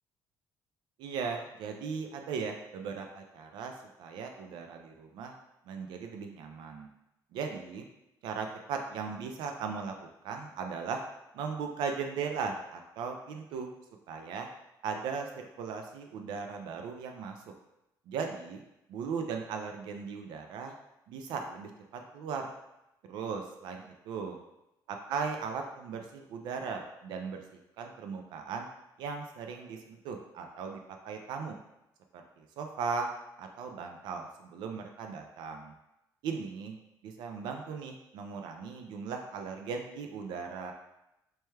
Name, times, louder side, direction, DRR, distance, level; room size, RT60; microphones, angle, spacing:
voice 1, 1.0-3.7 4.0-5.3 5.7-6.9 7.3-7.9 8.2-9.9 10.2-11.0 11.3-13.7 14.1-14.5 14.8-17.4 18.1-18.6 18.9-20.7 21.1-22.5 23.1-24.4 25.1-28.7 29.0-30.8 31.0-31.6 32.1-33.1 33.4-35.7 36.2-36.8 37.0-40.7, right 5 dB, 75° right, 4 dB, 0.3 m, -37 dB
4.4 x 2.2 x 3.1 m, 0.90 s
cardioid pair, 170°, 8 cm